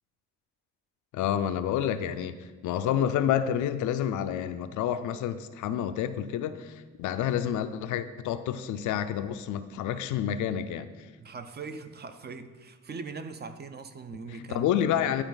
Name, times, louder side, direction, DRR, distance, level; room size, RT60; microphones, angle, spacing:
voice 1, 1.1-2.4 2.6-10.9 14.5-15.2, left 10 dB, 80° left, 11 dB, 0.5 m, -29 dB
voice 2, 11.2-15.1, right 4 dB, 35° right, 9 dB, 0.6 m, -41 dB
11.0 x 4.1 x 4.0 m, 1.4 s
cardioid pair, 90°, 30 cm